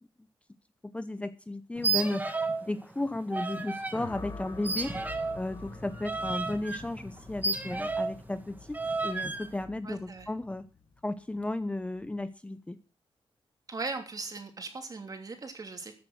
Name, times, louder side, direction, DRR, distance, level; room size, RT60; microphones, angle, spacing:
voice 1, 0.9-2.3 2.6-4.9 5.3-8.8 9.0-10.7 11.0-12.8, left 2 dB, 10° left, 11 dB, 0.7 m, -34 dB
sound 1, 1.8-2.7 2.9-4.0 4.6-8.2 8.7-9.5, right 3 dB, 15° right, 1.6 m, -32 dB
sound 2, 3.9-12.2, left 4 dB, 35° left, 1.5 m, -47 dB
voice 2, 9.8-10.3 13.7-15.9, right 3 dB, 40° right, 5 dB, 3.0 m, -38 dB
14.0 x 7.6 x 6.3 m, 0.35 s
wide cardioid pair, 115°, 10 cm